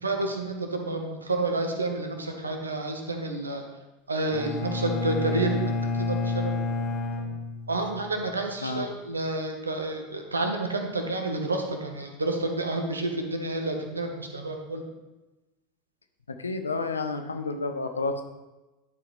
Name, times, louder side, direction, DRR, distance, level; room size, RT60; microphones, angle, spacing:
voice 1, 0.0-3.6 4.1-6.9 7.2-7.3 7.7-14.8, right 2 dB, 80° right, 4 dB, 0.9 m, -30 dB
Bowed string instrument, 4.3-8.2, left 3 dB, 35° left, 1.0 m, -30 dB
voice 2, 16.3-18.2, left 3 dB, 75° left, 7 dB, 0.6 m, -30 dB
10.5 x 4.6 x 3.5 m, 1.1 s
figure-of-eight pair, 80°, 0 cm